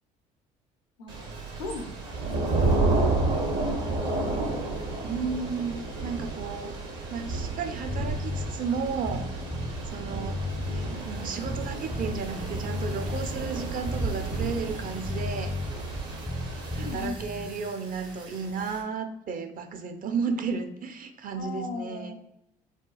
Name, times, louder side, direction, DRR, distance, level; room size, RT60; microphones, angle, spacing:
voice 1, 1.0-2.8 3.8-5.1 16.8-17.6 21.4-22.1, left 3 dB, 85° left, 4 dB, 0.6 m, -40 dB
Thunder / Rain, 1.1-17.1, right 3 dB, 65° right, 1.1 m, -31 dB
sound 1, 1.1-18.8, right 4 dB, 85° right, 1.4 m, -48 dB
voice 2, 5.0-6.8 7.1-9.3 9.9-15.5 16.7-22.1, right 5 dB, 45° right, 7 dB, 0.6 m, -33 dB
sound 2, 7.9-17.5, left 2 dB, 5° left, 0.4 m, -34 dB
4.4 x 2.3 x 2.3 m, 0.82 s
hypercardioid pair, 55°, 20 cm